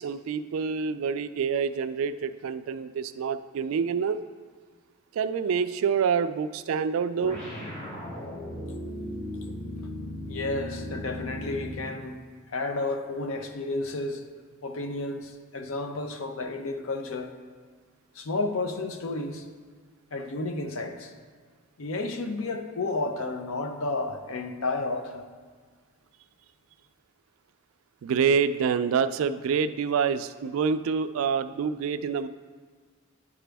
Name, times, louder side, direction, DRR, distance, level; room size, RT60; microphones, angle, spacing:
voice 1, 0.0-4.2 5.1-7.4 28.0-32.3, right 6 dB, 75° right, 12 dB, 0.3 m, -27 dB
sound 1, 7.2-11.9, left 1 dB, 40° left, 2.3 m, -37 dB
voice 2, 10.3-12.2 12.5-14.2 14.6-17.4 18.1-19.5 20.1-21.1 21.8-25.3, left 2 dB, 75° left, 7 dB, 0.6 m, -32 dB
9.9 x 5.0 x 3.4 m, 1.5 s
head